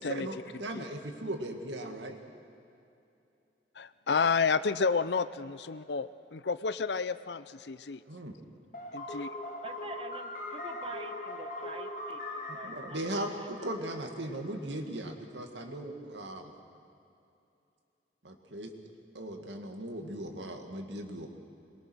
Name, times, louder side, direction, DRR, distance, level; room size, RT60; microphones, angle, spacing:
voice 1, 0.0-2.2 8.1-8.4 12.5-16.5 18.2-18.7 19.1-21.3, right 1 dB, 90° right, 4 dB, 2.1 m, -38 dB
voice 2, 3.8-8.0 8.9-9.3, left 5 dB, 70° left, 15 dB, 0.6 m, -30 dB
sound 1, 8.7-14.6, left 1 dB, 50° left, 2.0 m, -41 dB
voice 3, 9.6-13.3, right 2 dB, 30° right, 6 dB, 1.2 m, -46 dB
23.5 x 22.0 x 6.3 m, 2.7 s
head